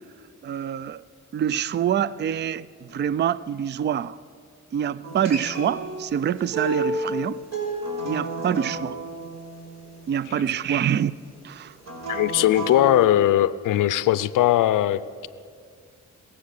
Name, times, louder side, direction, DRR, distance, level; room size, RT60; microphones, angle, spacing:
voice 1, 0.4-1.0 1.3-4.2 4.7-7.4 8.0-9.0 10.1-11.1 11.4-11.7, right 9 dB, 35° right, 0.4 m, -26 dB
Acoustic guitar, 5.0-10.2 11.8-13.0, right 2 dB, 55° right, 4.5 m, -31 dB
voice 2, 12.1-15.3, left 13 dB, 85° left, 0.5 m, -20 dB
21.5 x 7.5 x 6.6 m
cardioid pair, 65°, 31 cm